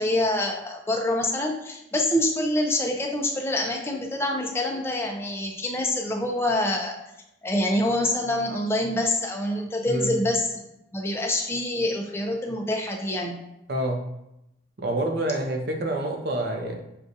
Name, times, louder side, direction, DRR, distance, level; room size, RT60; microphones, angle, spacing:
voice 1, 0.0-7.0 7.4-10.6 10.9-13.4, left 1 dB, 15° left, 1 dB, 0.5 m, -26 dB
voice 2, 13.7-14.0 14.8-16.8, right 1 dB, 55° right, 2 dB, 0.6 m, -27 dB
6.4 x 2.3 x 2.7 m, 0.85 s
head